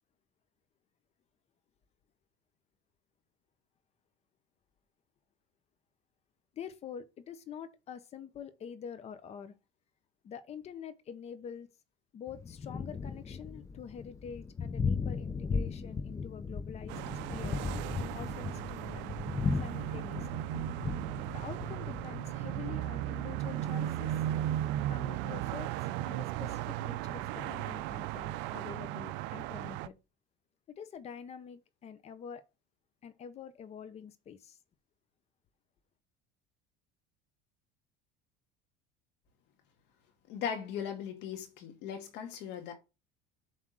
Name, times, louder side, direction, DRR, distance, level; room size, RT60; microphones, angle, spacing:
voice 1, 6.5-9.5 10.2-11.7 12.1-17.0 17.3-17.6 18.1-19.0 19.6-20.4 21.3-24.1 24.9-25.7 26.0-30.0 30.7-32.4 33.0-34.6, left 7 dB, 35° left, 1.0 m, -46 dB
Thunder, 12.3-27.6, left 5 dB, 15° left, 0.5 m, -38 dB
sound 1, 16.9-29.9, right 13 dB, 65° right, 0.5 m, -36 dB
voice 2, 40.3-42.7, left 8 dB, 60° left, 2.0 m, -38 dB
7.4 x 3.6 x 6.2 m
cardioid pair, 145°, 20 cm